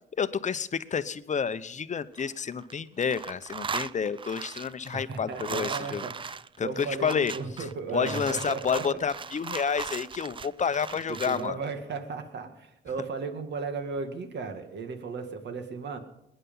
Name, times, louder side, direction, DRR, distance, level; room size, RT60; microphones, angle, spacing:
voice 1, 0.2-6.1 6.6-7.3 7.9-11.6, left 6 dB, 35° left, 14 dB, 0.8 m, -30 dB
sound 1, 2.0-2.7 3.0-11.5, right 5 dB, 25° right, 0.4 m, -38 dB
voice 2, 4.9-6.2 6.6-8.9 11.1-16.0, right 4 dB, 60° right, 7 dB, 2.1 m, -35 dB
20.5 x 10.0 x 5.5 m, 0.81 s
cardioid pair, 90°, 20 cm